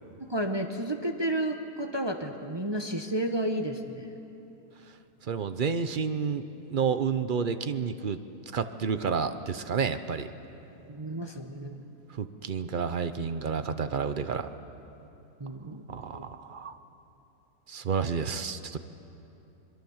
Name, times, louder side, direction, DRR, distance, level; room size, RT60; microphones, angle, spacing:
voice 1, 0.2-4.1 10.9-11.9 15.4-15.8 16.1-16.2, right 1 dB, 20° right, 4 dB, 0.8 m, -32 dB
voice 2, 5.3-8.2 8.5-10.3 12.2-14.5 15.9-16.8 17.7-18.8, right 6 dB, 50° right, 10 dB, 0.6 m, -30 dB
27.0 x 22.0 x 7.2 m, 3.0 s
omnidirectional pair, 1.8 m